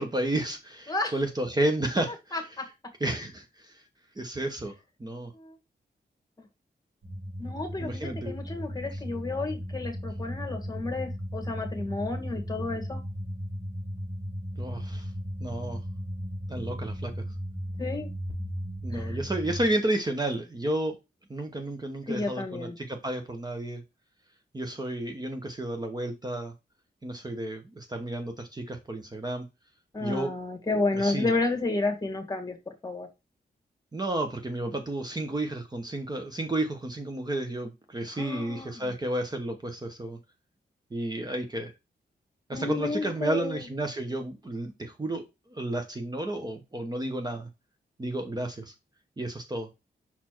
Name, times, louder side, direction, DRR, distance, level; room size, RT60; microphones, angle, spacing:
voice 1, 0.0-2.3 3.0-3.8 4.2-4.7 5.0-5.3 7.8-8.4 14.6-15.1 15.4-15.8 16.5-17.1 18.8-21.0 21.3-23.8 24.5-26.5 27.0-29.4 30.0-30.3 30.9-31.3 33.9-40.2 40.9-41.7 42.5-45.2 45.5-47.5 48.0-48.7 49.2-49.7, right 1 dB, 25° right, 5 dB, 1.0 m, -31 dB
voice 2, 2.3-2.6 5.3-5.6 7.4-13.0 17.8-18.1 18.9-19.2 22.1-22.8 29.9-33.1 38.1-38.9 42.5-43.7, left 3 dB, 20° left, 4 dB, 1.7 m, -31 dB
sound 1, 7.0-19.7, equal, 50° right, 4.6 m, -36 dB
5.8 x 4.2 x 4.5 m, 0.24 s
wide cardioid pair, 130°, 18 cm